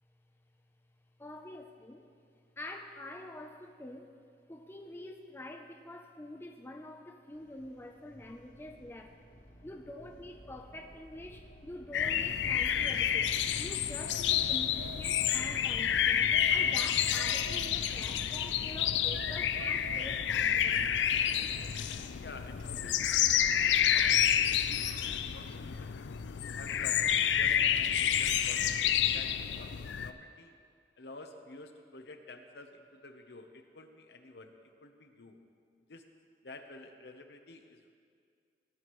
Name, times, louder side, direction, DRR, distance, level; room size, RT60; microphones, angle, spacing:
voice 1, 1.2-2.1 2.6-4.1 4.5-9.2 9.6-20.9, left 1 dB, 15° left, 3 dB, 0.5 m, -46 dB
sound 1, 7.3-22.1, equal, 50° left, 1.3 m, -56 dB
sound 2, 11.9-30.1, left 9 dB, 85° left, 0.4 m, -29 dB
sound 3, 14.0-15.8 16.3-18.2 18.8-20.6, right 4 dB, 85° right, 0.5 m, -48 dB
voice 2, 22.2-23.0 23.3-24.9 25.3-26.0 26.5-30.5 31.0-34.5 34.8-35.4 35.9-36.1 36.4-37.9, left 2 dB, 70° left, 5 dB, 0.9 m, -50 dB
18.0 x 10.0 x 3.1 m, 2.2 s
head